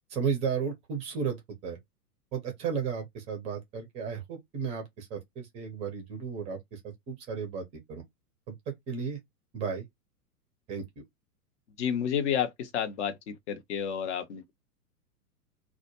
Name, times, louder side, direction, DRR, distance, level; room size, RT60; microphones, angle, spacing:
voice 1, 0.1-1.8 2.3-8.0 8.5-8.6 8.9-9.2 9.5-9.9 10.7-11.0, right 6 dB, 15° right, 0.5 m, -34 dB
voice 2, 11.8-14.5, left 8 dB, 45° left, 0.7 m, -30 dB
2.2 x 2.1 x 2.9 m
figure-of-eight pair, 105°, 48 cm